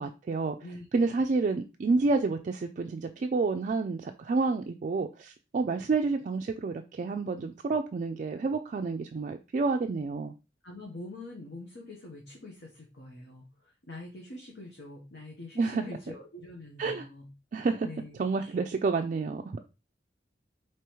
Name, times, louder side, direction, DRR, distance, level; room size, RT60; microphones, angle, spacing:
voice 1, 0.0-0.6 0.9-10.3 15.6-15.8 16.8-17.1 17.5-17.9 18.2-19.6, right 4 dB, 45° right, 0.3 m, -29 dB
voice 2, 0.6-1.2 10.6-17.3 17.8-18.5, left 2 dB, 70° left, 0.9 m, -45 dB
4.8 x 3.0 x 3.0 m
head